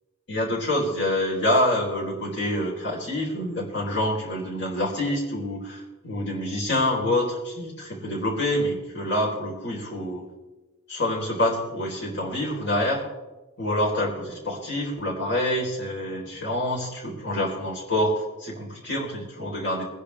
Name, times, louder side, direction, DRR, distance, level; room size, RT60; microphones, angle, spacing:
voice 1, 0.3-10.2 10.9-13.0 13.6-18.1 18.4-19.8, left 1 dB, 50° left, -1 dB, 4.0 m, -26 dB
21.5 x 10.0 x 3.4 m, 1.1 s
head